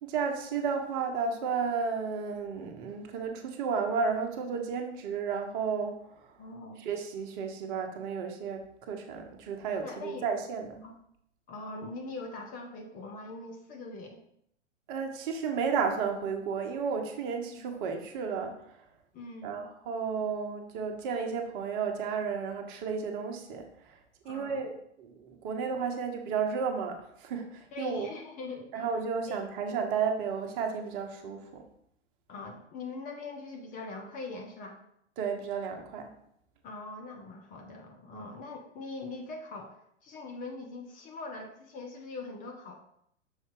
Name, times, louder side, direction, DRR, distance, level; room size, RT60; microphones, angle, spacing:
voice 1, 0.0-6.3 6.8-10.8 14.9-18.6 19.4-23.6 24.2-28.1 28.7-31.6 35.2-36.1 38.1-38.3, right 6 dB, 45° right, 4 dB, 1.0 m, -33 dB
voice 2, 6.4-6.8 9.8-10.3 10.8-11.0 11.5-14.2 19.1-19.7 24.2-24.7 27.7-28.8 29.3-29.4 32.3-34.8 36.6-39.8 40.0-42.8, left 3 dB, 20° left, 3 dB, 0.7 m, -42 dB
6.4 x 4.0 x 3.8 m, 0.72 s
hypercardioid pair, 120°, 37 cm